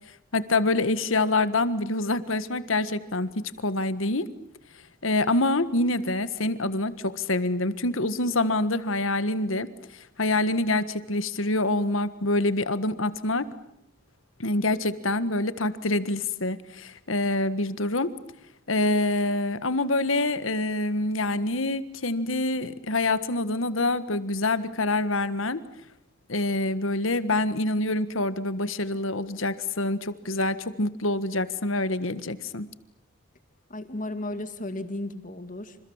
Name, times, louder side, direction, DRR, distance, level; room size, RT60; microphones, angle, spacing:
voice 1, 0.3-4.3 5.0-13.5 14.4-18.1 18.7-25.6 26.3-32.7, left 2 dB, 75° left, 13 dB, 1.6 m, -26 dB
voice 2, 33.7-35.8, left 1 dB, 40° left, 10 dB, 2.2 m, -34 dB
28.5 x 27.5 x 7.3 m, 0.77 s
head